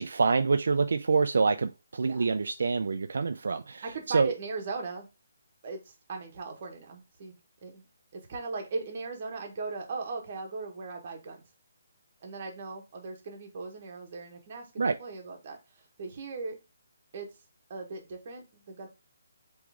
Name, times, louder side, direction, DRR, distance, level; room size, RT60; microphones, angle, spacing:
voice 1, 0.0-4.3 14.8-15.0, right 4 dB, 65° right, 0.3 m, -26 dB
voice 2, 3.8-5.1 5.6-7.9 8.1-11.4 12.2-16.6 17.1-17.3 17.7-18.9, right 4 dB, 30° right, 1.0 m, -39 dB
3.6 x 3.1 x 4.7 m
hypercardioid pair, 175°, 0 cm